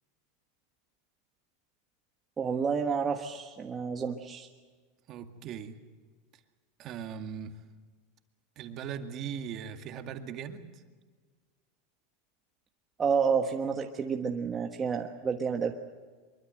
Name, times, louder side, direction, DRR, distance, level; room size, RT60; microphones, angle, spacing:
voice 1, 2.4-4.5 13.0-15.7, right 6 dB, 20° right, 3 dB, 1.4 m, -30 dB
voice 2, 5.1-5.8 6.8-7.6 8.6-10.8, right 8 dB, 40° right, 7 dB, 2.1 m, -39 dB
24.0 x 23.0 x 7.8 m, 1.4 s
supercardioid pair, 145°, 0 cm